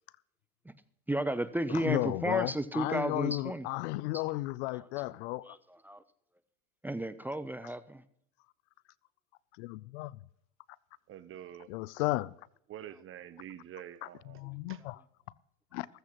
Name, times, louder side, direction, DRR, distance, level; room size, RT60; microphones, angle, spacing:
voice 1, 1.1-3.7 4.1-4.2 4.7-5.1 5.4-6.0 6.8-8.0 14.5-14.7, right 1 dB, 5° right, 0.5 m, -34 dB
voice 2, 1.7-5.6 9.6-10.1 11.7-12.3 14.0-15.0 15.7-15.9, left 19 dB, 60° left, 0.6 m, -34 dB
voice 3, 11.1-11.7 12.7-14.4 14.7-14.8, right 11 dB, 35° right, 0.9 m, -47 dB
15.5 x 14.5 x 3.0 m
hypercardioid pair, 105°, 38 cm